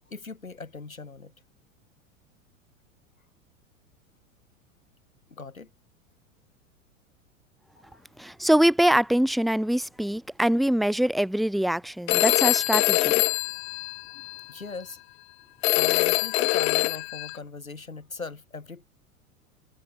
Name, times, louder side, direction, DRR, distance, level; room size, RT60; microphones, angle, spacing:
voice 1, 0.1-1.3 5.3-5.7 7.9-8.0 14.5-15.0 15.7-18.8, left 4 dB, 90° left, 5.5 m, -39 dB
voice 2, 8.2-13.2, right 1 dB, ahead, 0.6 m, -23 dB
Telephone, 12.1-14.4 15.6-17.4, left 21 dB, 50° left, 0.7 m, -24 dB
figure-of-eight pair, 90°, 40 cm